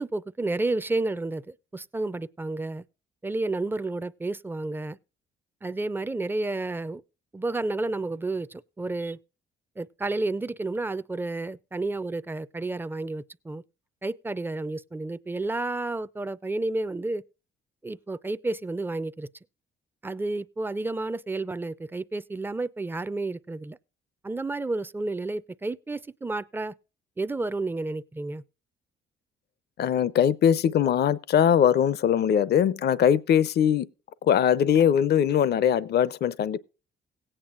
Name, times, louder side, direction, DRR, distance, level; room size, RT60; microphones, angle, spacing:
voice 1, 0.0-2.8 3.2-5.0 5.6-7.0 7.3-9.2 9.8-13.6 14.0-17.2 17.8-19.3 20.0-23.8 24.2-26.7 27.2-28.4, right 2 dB, 10° right, 0.5 m, -31 dB
voice 2, 29.8-33.9 34.2-36.6, left 9 dB, 55° left, 0.6 m, -21 dB
17.5 x 8.8 x 2.5 m
cardioid pair, 90°, 20 cm